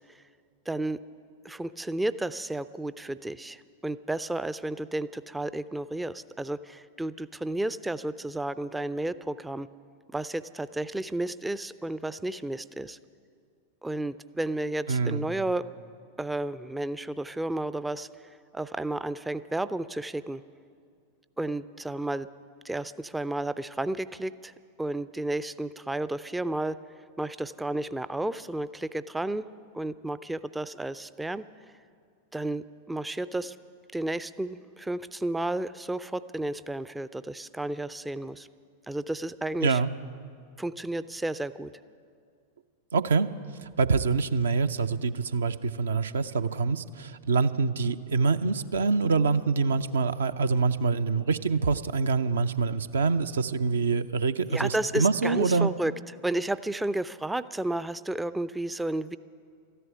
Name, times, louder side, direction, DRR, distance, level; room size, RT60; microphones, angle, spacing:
voice 1, 0.7-1.0 1.4-9.7 10.1-13.0 13.8-15.6 16.2-20.4 21.4-22.3 22.6-24.5 24.8-26.8 27.2-29.4 29.7-31.4 32.3-33.6 33.9-38.5 38.9-39.8 40.6-41.7 54.5-55.9 56.2-59.2, right 2 dB, 5° right, 15 dB, 0.3 m, -32 dB
voice 2, 14.9-15.3 39.6-39.9 42.9-43.3 43.6-55.7, right 4 dB, 70° right, 12 dB, 0.5 m, -25 dB
13.5 x 11.0 x 9.6 m, 2.3 s
figure-of-eight pair, 90°, 0 cm